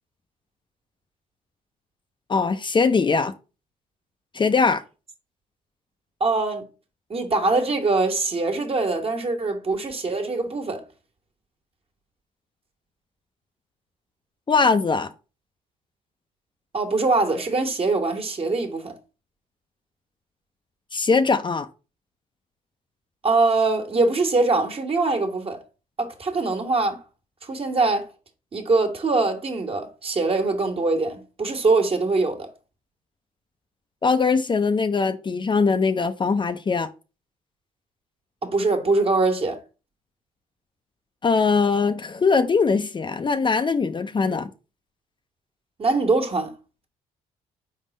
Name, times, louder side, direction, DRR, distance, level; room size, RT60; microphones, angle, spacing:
voice 1, 2.3-3.3 4.3-4.8 14.5-15.1 20.9-21.7 34.0-36.9 41.2-44.5, left 4 dB, 30° left, 0.6 m, -21 dB
voice 2, 6.2-6.6 7.1-10.8 16.7-18.9 23.2-25.6 26.0-27.0 27.4-28.1 28.5-32.5 38.4-39.6 45.8-46.5, right 3 dB, 40° right, 1.5 m, -23 dB
4.8 x 3.7 x 5.3 m
supercardioid pair, 65°, 15 cm